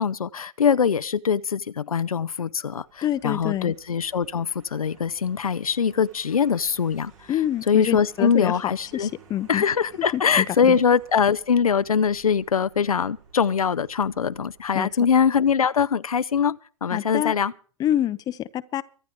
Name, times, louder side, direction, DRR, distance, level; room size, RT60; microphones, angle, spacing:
voice 1, 0.0-7.1 7.7-9.1 9.5-17.5, left 7 dB, 85° left, 0.5 m, -22 dB
Vehicle, 2.7-15.0, right 5 dB, 65° right, 4.2 m, -54 dB
voice 2, 3.0-3.7 7.3-8.5 8.9-9.6 10.1-10.8 14.7-14.9 16.9-17.3 17.8-18.8, left 12 dB, 20° left, 0.6 m, -26 dB
24.0 x 10.0 x 3.6 m
hypercardioid pair, 110°, 18 cm